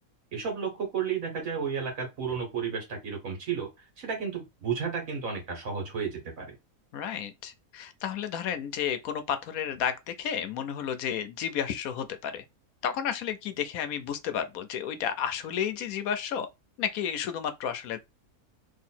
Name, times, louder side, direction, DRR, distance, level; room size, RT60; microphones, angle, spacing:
voice 1, 0.3-3.7 4.0-6.6, right 6 dB, 70° right, 1.8 m, -32 dB
voice 2, 6.9-12.4 12.8-16.5 16.8-18.0, left 8 dB, 80° left, 1.1 m, -32 dB
3.1 x 2.9 x 4.2 m
omnidirectional pair, 1.5 m